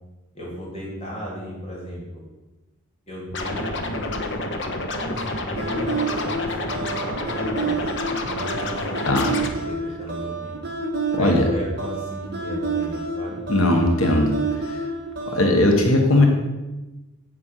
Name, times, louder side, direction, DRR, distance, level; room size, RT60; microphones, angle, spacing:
voice 1, 0.3-2.2 3.1-4.5 4.9-7.9 8.2-10.6 11.1-13.4, equal, 30° left, -5 dB, 2.8 m, -35 dB
Scratching (performance technique), 3.3-9.5, left 2 dB, 60° left, 1.1 m, -29 dB
sound 1, 5.6-15.6, right 3 dB, 50° right, 2.0 m, -29 dB
voice 2, 11.1-11.5 13.5-14.8 15.3-16.3, left 1 dB, 85° left, 2 dB, 1.4 m, -19 dB
8.0 x 7.4 x 5.7 m, 1.1 s
head